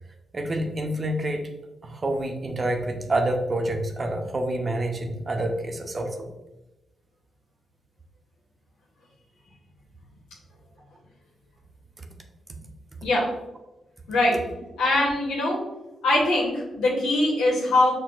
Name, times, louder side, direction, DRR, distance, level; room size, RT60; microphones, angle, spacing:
voice 1, 0.3-1.5 1.8-6.3, right 1 dB, 40° right, 3 dB, 0.7 m, -27 dB
voice 2, 14.1-14.4 14.8-15.6 16.0-17.9, left 2 dB, 90° left, -3 dB, 0.9 m, -22 dB
5.9 x 2.1 x 2.5 m, 0.99 s
supercardioid pair, 50°, 0 cm